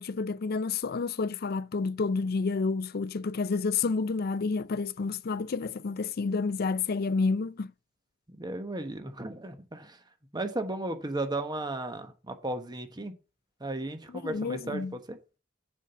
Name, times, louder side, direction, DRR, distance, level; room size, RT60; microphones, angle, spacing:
voice 1, 0.0-7.7 14.2-14.9, left 4 dB, 50° left, 0.4 m, -29 dB
voice 2, 8.3-10.0 10.3-13.1 13.6-15.2, right 2 dB, 20° right, 1.1 m, -35 dB
7.3 x 5.5 x 6.9 m
head